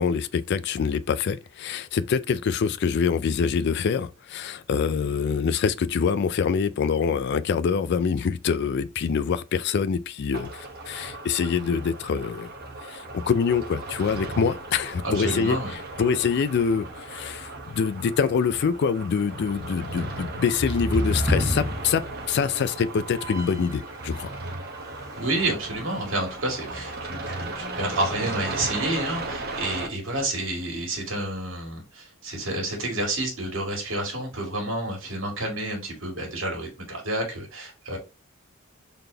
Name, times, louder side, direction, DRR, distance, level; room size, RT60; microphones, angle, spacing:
voice 1, 0.0-12.5 12.8-15.6 16.0-24.3, left 6 dB, 55° left, 0.3 m, -25 dB
sound 1, 10.3-29.9, right 2 dB, 50° right, 0.9 m, -36 dB
voice 2, 15.0-15.7 25.2-38.0, right 1 dB, 70° right, 2.1 m, -29 dB
sound 2, 20.3-23.7 24.0-26.4 26.7-26.8 27.2-28.9, equal, 15° right, 1.2 m, -32 dB
4.0 x 3.3 x 2.7 m
head